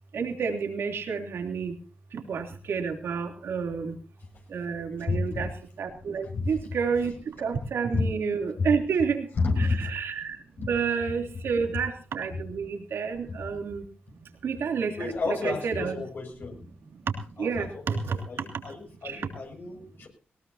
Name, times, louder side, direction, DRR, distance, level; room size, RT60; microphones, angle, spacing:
voice 1, 0.1-1.7 2.3-3.9 4.5-5.5 5.8-7.1 7.4-9.2 9.6-13.8 14.4-16.0 17.4-18.1 19.0-19.2, right 5 dB, 80° right, 4 dB, 3.2 m, -30 dB
voice 2, 5.1-5.5 6.2-6.5 7.9-8.1 8.6-8.7 9.4-9.9 10.6-10.7 12.3-12.4 13.3-13.6 15.0-16.6 17.4-18.0 18.3-20.1, left 3 dB, 65° left, 1 dB, 6.9 m, -30 dB
20.5 x 18.5 x 2.8 m, 0.39 s
cardioid pair, 70°, 4 cm